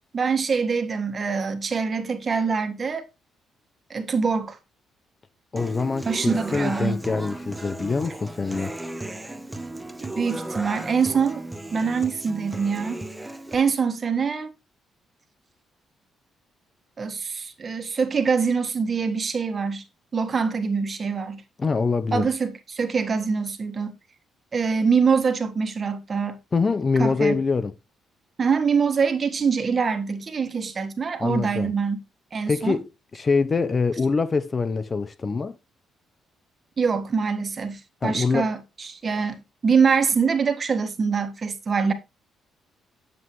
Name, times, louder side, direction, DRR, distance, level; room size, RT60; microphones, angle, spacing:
voice 1, 0.1-3.1 3.9-4.6 6.1-7.0 10.0-11.5 11.7-13.0 13.5-14.5 17.0-19.8 20.1-21.4 22.1-23.9 24.5-26.4 27.0-27.4 28.4-32.0 32.3-32.8 36.8-41.9, right 5 dB, 40° right, 1.6 m, -24 dB
voice 2, 5.5-8.7 21.6-22.3 26.5-27.7 31.2-31.7 32.5-35.6 38.0-38.5, left 4 dB, 35° left, 0.7 m, -24 dB
Human voice / Acoustic guitar, 5.6-13.5, right 1 dB, 10° right, 1.0 m, -35 dB
9.8 x 7.6 x 3.2 m
cardioid pair, 90°, 0 cm